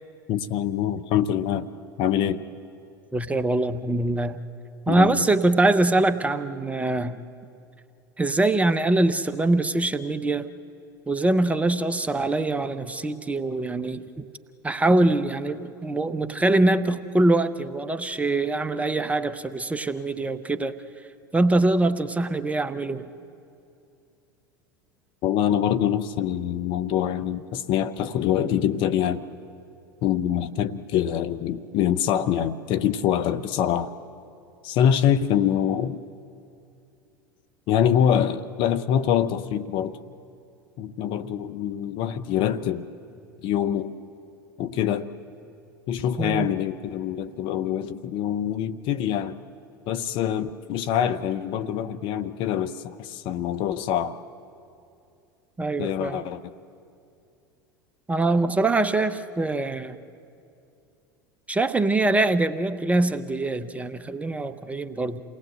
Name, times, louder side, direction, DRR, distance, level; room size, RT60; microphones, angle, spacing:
voice 1, 0.3-1.7 2.0-2.4 4.9-5.2 25.2-29.2 30.0-33.9 34.6-36.0 37.7-40.0 40.8-42.9 43.4-43.9 44.6-45.1 45.9-49.4 49.9-54.2 55.8-56.5, left 9 dB, 45° left, 10 dB, 0.9 m, -25 dB
voice 2, 3.1-4.4 4.9-7.2 8.2-10.5 11.1-14.2 14.6-20.8 21.3-23.0 46.2-46.5 55.6-56.2 58.1-60.0 61.5-65.2, right 2 dB, 10° right, 11 dB, 0.9 m, -23 dB
28.5 x 19.0 x 7.8 m, 2.5 s
figure-of-eight pair, 80°, 11 cm